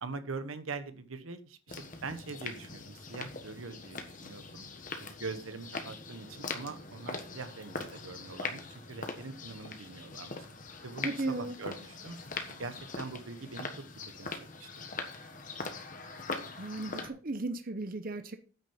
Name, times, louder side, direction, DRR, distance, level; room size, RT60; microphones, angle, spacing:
voice 1, 0.0-4.7 5.0-10.5 10.8-12.2 12.5-13.7 14.2-14.8, right 4 dB, 85° right, 1.1 m, -43 dB
sound 1, 1.7-17.1, left 3 dB, 40° left, 1.4 m, -42 dB
voice 2, 11.0-11.5 16.6-18.4, right 2 dB, 45° right, 0.8 m, -35 dB
9.1 x 6.4 x 5.6 m
head